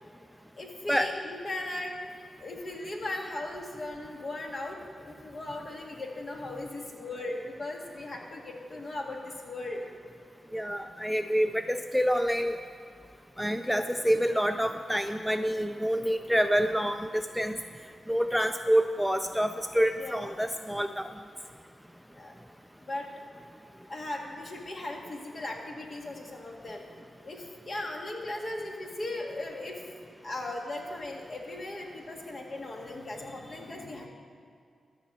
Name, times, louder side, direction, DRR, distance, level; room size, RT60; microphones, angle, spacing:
voice 1, 0.6-1.9 2.4-9.8 16.6-16.7 20.0-20.4 22.1-22.3 22.8-23.1 23.9-29.9 30.2-34.1, left 2 dB, 50° left, 0 dB, 1.9 m, -38 dB
voice 2, 10.5-12.6 13.4-17.6 18.1-21.1, equal, ahead, 7 dB, 0.4 m, -27 dB
13.0 x 5.3 x 7.8 m, 2.4 s
cardioid pair, 70°, 0 cm